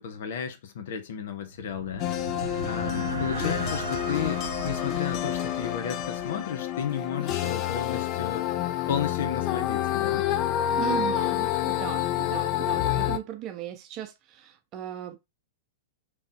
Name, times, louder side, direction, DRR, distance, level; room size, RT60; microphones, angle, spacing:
voice 1, 0.0-2.1 2.7-8.5 8.9-10.3, left 7 dB, 60° left, 0.8 m, -33 dB
sound 1, 1.5-7.2, right 2 dB, 80° right, 0.8 m, -36 dB
sound 2, 2.0-13.2, left 12 dB, 35° left, 0.4 m, -28 dB
voice 2, 10.8-15.2, right 12 dB, 35° right, 0.6 m, -37 dB
3.4 x 3.1 x 2.8 m
figure-of-eight pair, 105°, 0 cm